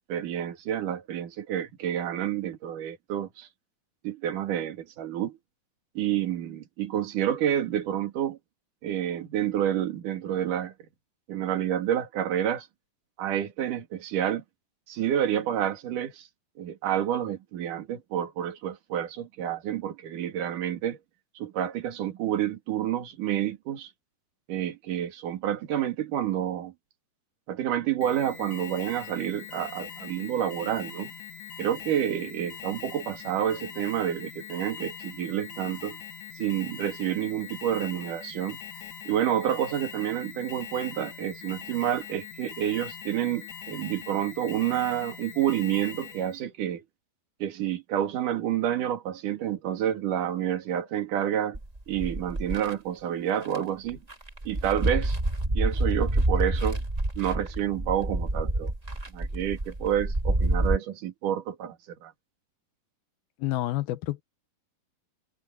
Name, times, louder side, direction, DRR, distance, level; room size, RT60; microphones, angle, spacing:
voice 1, 0.1-3.5 4.0-5.4 6.0-8.4 8.8-10.7 11.3-12.7 13.2-14.4 14.9-16.3 16.6-21.0 21.4-23.9 24.5-26.7 27.5-31.1 31.6-36.0 36.4-38.6 39.1-46.8 47.4-51.6 51.9-54.0 54.5-55.2 55.5-56.8 57.2-58.7 59.1-61.8 62.0-62.1, right 10 dB, 60° right, 3.6 m, -29 dB
Alarm, 28.0-46.4, left 8 dB, 65° left, 1.2 m, -42 dB
sound 1, 51.5-52.7 53.4-53.6 53.9-60.8, right 1 dB, 25° right, 0.8 m, -27 dB
voice 2, 63.4-64.2, left 16 dB, 80° left, 2.7 m, -29 dB
omnidirectional pair, 4.4 m